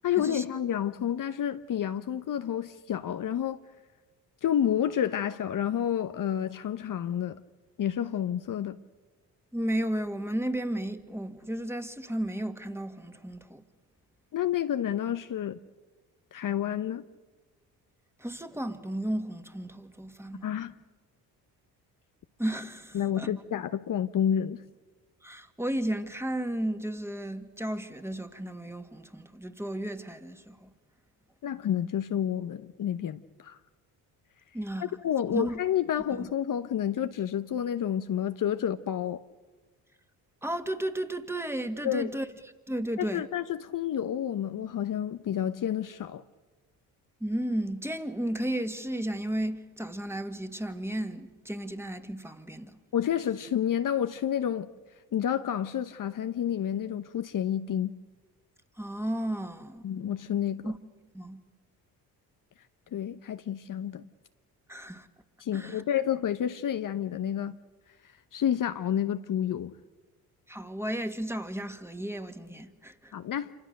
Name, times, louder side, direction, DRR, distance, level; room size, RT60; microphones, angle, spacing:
voice 1, 0.0-3.6 4.4-7.4 7.8-8.8 14.3-15.6 16.3-17.0 20.4-20.7 22.9-24.6 31.4-33.6 34.8-39.2 41.8-42.1 43.0-46.2 52.9-54.7 55.1-57.9 59.8-60.7 62.9-64.0 65.4-67.6 68.3-69.7 73.1-73.5, left 10 dB, 50° left, 0.9 m, -29 dB
voice 2, 9.5-13.6 18.2-20.5 22.4-23.3 25.2-30.7 34.5-35.0 35.3-35.6 40.4-42.3 42.7-43.2 47.2-52.8 58.8-59.8 60.7-60.8 61.1-61.4 64.7-65.1 65.5-65.8 70.5-73.1, right 1 dB, 5° right, 2.0 m, -33 dB
27.0 x 25.0 x 6.6 m
supercardioid pair, 65°, 40 cm